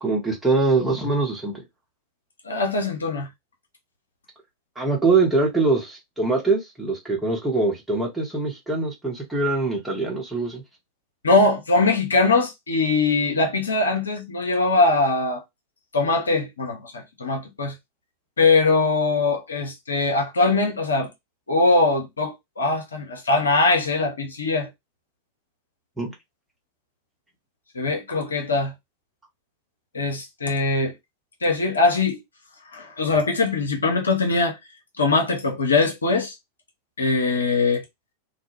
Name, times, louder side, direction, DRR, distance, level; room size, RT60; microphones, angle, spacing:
voice 1, 0.0-1.6 4.8-10.6 26.0-26.1, right 3 dB, 5° right, 1.0 m, -23 dB
voice 2, 2.4-3.3 11.2-15.4 15.9-17.7 18.4-21.1 21.5-24.7 27.7-28.7 29.9-30.9 31.4-32.2 32.7-34.6 35.0-36.3 37.0-37.8, left 3 dB, 75° left, 0.6 m, -21 dB
2.2 x 2.1 x 3.2 m
figure-of-eight pair, 90°, 0 cm